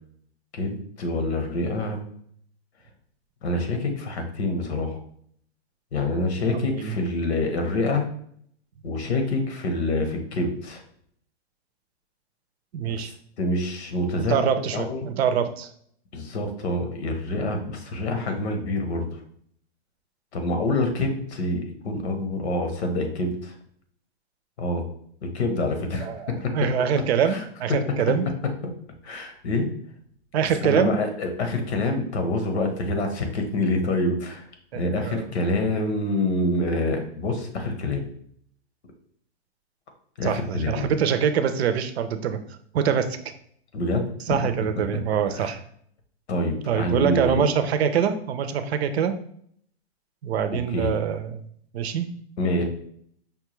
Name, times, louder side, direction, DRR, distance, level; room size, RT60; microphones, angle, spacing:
voice 1, 0.5-2.0 3.4-5.0 5.9-8.1 8.8-10.8 12.9-14.4 14.7-15.1 16.1-19.1 20.3-23.5 24.6-24.8 25.2-26.7 27.2-27.4 29.0-29.7 30.6-34.5 34.7-38.0 40.2-40.9 43.7-44.4 45.3-45.5 46.3-47.5 50.5-50.9 52.4-52.6, left 2 dB, 80° left, 5 dB, 1.1 m, -26 dB
voice 2, 6.5-7.0 12.7-13.1 14.2-15.7 26.0-28.3 30.3-31.0 34.7-35.3 40.2-42.4 42.7-43.3 44.3-45.6 46.7-49.1 50.2-51.4 51.7-52.1, right 7 dB, 75° right, 10 dB, 0.6 m, -24 dB
5.4 x 2.3 x 3.0 m, 0.64 s
hypercardioid pair, 150°, 32 cm